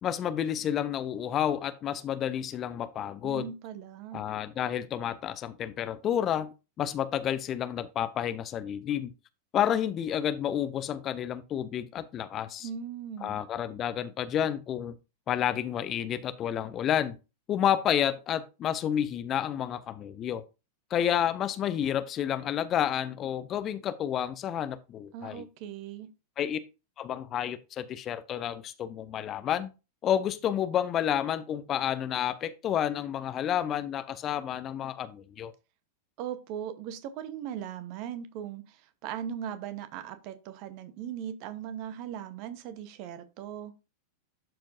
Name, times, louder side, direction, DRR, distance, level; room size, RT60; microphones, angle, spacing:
voice 1, 0.0-3.5 4.1-9.1 9.5-12.7 13.2-15.0 15.3-17.2 17.5-20.4 20.9-25.5 26.4-26.6 27.0-29.7 30.0-35.5, left 10 dB, 30° left, 0.6 m, -30 dB
voice 2, 3.2-4.2 12.6-13.4 25.1-26.1 36.2-43.7, right 9 dB, 45° right, 0.9 m, -39 dB
12.0 x 4.5 x 2.6 m
figure-of-eight pair, 90°, 0 cm